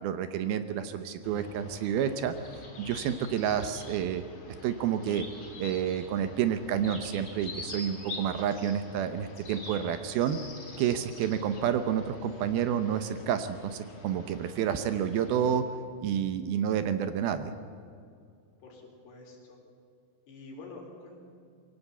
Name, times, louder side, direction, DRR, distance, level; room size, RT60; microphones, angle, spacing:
voice 1, 0.0-2.3 2.8-4.2 4.6-5.3 5.6-10.4 10.8-15.6 16.0-17.5, right 9 dB, 75° right, 10 dB, 2.5 m, -29 dB
sound 1, 1.2-15.6, left 2 dB, 30° left, 4.2 m, -46 dB
voice 2, 18.6-19.6 20.3-21.2, left 3 dB, 80° left, 0 dB, 6.0 m, -47 dB
23.0 x 17.0 x 8.2 m, 2.4 s
omnidirectional pair, 4.8 m